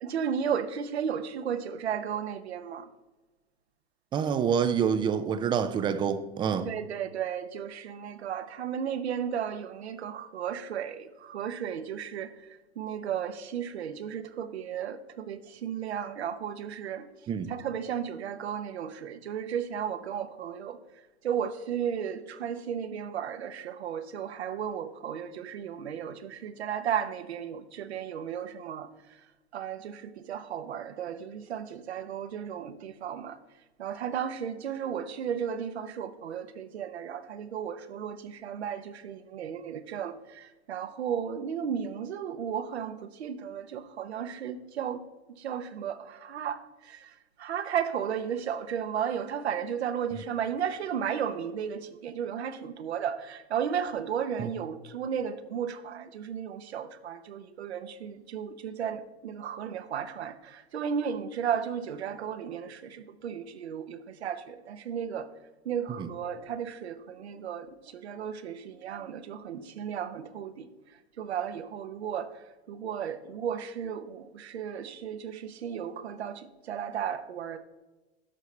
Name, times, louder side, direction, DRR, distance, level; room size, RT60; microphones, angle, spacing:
voice 1, 0.0-2.9 6.6-12.5 12.8-17.1 17.5-20.8 21.2-28.9 29.5-33.4 33.8-45.0 45.4-65.3 65.6-70.7 71.2-77.6, right 8 dB, 80° right, 0.9 m, -34 dB
voice 2, 4.1-6.7 17.3-17.5 54.4-54.5 66.0-66.1, right 7 dB, 15° right, 0.4 m, -27 dB
11.0 x 6.6 x 3.2 m
hypercardioid pair, 115°, 32 cm